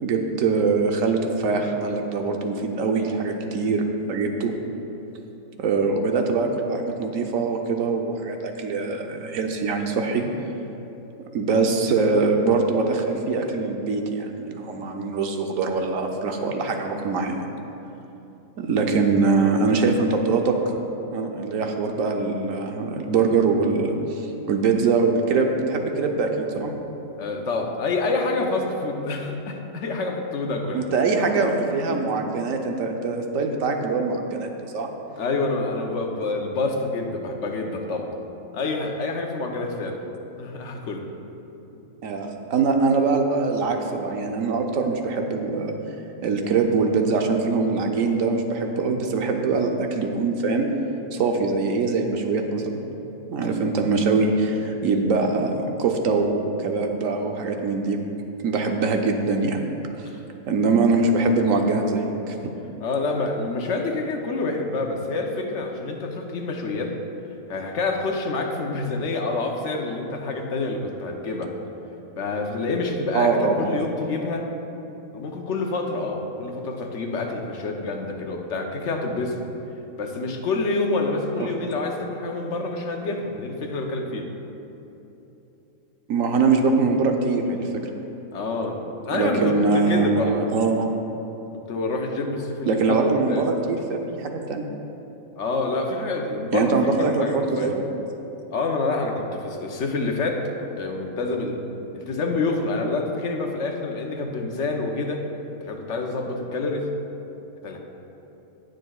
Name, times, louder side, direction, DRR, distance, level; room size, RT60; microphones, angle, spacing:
voice 1, 0.0-4.5 5.6-10.2 11.3-17.5 18.6-20.5 21.1-24.2 24.5-26.7 30.7-34.9 42.0-45.8 46.2-50.7 51.1-52.8 53.3-55.5 55.8-58.0 58.4-59.6 60.5-62.5 73.1-73.7 86.1-87.7 89.1-90.9 92.7-94.6 96.5-97.8, right 4 dB, 70° right, 3 dB, 1.1 m, -23 dB
voice 2, 27.2-30.8 31.4-32.1 35.2-38.1 38.5-40.0 40.4-41.0 60.1-60.2 62.8-66.9 67.5-71.5 72.2-74.5 75.1-79.3 80.0-84.3 88.3-90.4 91.5-93.4 95.4-97.7 98.5-100.4 100.8-101.6 101.9-105.2 105.6-106.9 107.6-107.8, left 3 dB, 60° left, 2 dB, 1.1 m, -27 dB
17.5 x 6.5 x 2.4 m, 3.0 s
omnidirectional pair, 1.5 m